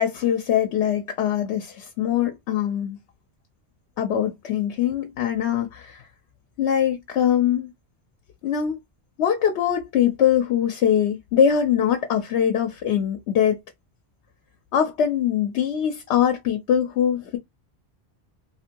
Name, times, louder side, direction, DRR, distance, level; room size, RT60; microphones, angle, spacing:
voice 1, 0.0-3.0 4.0-6.1 6.6-7.7 8.4-8.8 9.2-13.6 14.7-17.4, left 9 dB, 85° left, 0.9 m, -22 dB
2.8 x 2.5 x 2.8 m
omnidirectional pair, 1.1 m